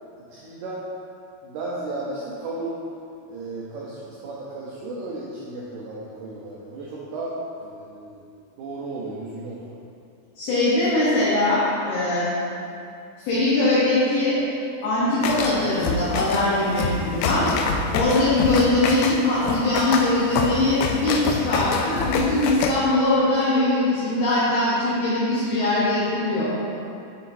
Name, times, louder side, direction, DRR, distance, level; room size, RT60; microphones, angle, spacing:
voice 1, 0.3-0.8 1.4-2.8 3.3-7.3 7.6-8.2 8.6-9.8, right 2 dB, 90° right, -6 dB, 2.2 m, -34 dB
voice 2, 10.4-12.3 13.2-14.4 14.8-17.5 17.9-26.6, left 2 dB, 70° left, -10 dB, 2.6 m, -21 dB
sound 1, 15.2-22.7, left 4 dB, 90° left, 3.1 m, -27 dB
7.2 x 5.7 x 2.7 m, 2.5 s
omnidirectional pair, 5.5 m